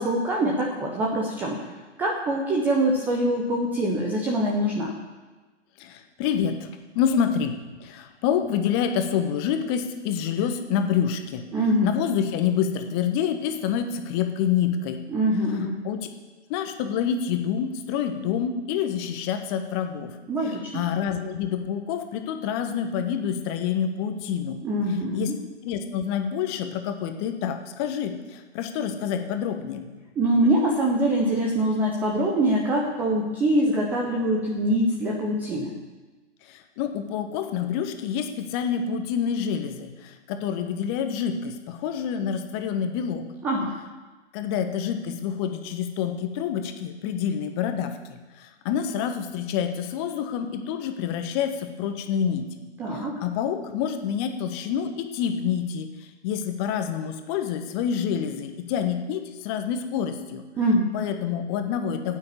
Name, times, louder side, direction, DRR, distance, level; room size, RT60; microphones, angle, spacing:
voice 1, 0.0-1.7 2.0-4.9 11.5-11.9 15.1-15.8 20.3-20.8 24.6-25.4 30.2-35.7 43.4-43.7 52.8-53.2 60.6-60.9, right 1 dB, 5° right, -1 dB, 0.5 m, -24 dB
voice 2, 5.8-6.7 6.9-11.5 11.8-15.0 15.8-16.1 16.5-20.1 20.7-24.6 25.1-25.3 25.6-29.9 36.5-43.2 44.3-48.0 48.4-52.4 52.9-60.4 60.9-62.2, left 8 dB, 20° left, 7 dB, 1.1 m, -27 dB
12.5 x 8.9 x 8.7 m, 1.3 s
figure-of-eight pair, 125°, 35 cm